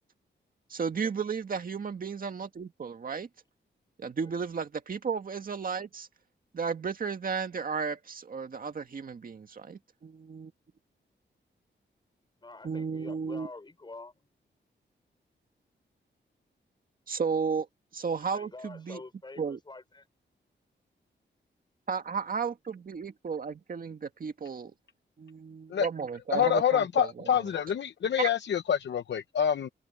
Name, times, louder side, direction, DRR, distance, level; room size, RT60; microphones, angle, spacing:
voice 1, 0.7-3.3 4.0-6.1 6.5-10.5 12.6-13.5 17.1-17.7 17.9-19.0 19.4-19.6 21.9-24.7 25.2-27.3 28.2-28.3, right 5 dB, 50° right, 1.9 m, -33 dB
voice 2, 12.4-14.1 18.2-20.1 27.5-27.8, left 3 dB, 25° left, 4.9 m, -47 dB
voice 3, 26.3-29.7, left 9 dB, 70° left, 0.8 m, -27 dB
open air
wide cardioid pair, 145°, 19 cm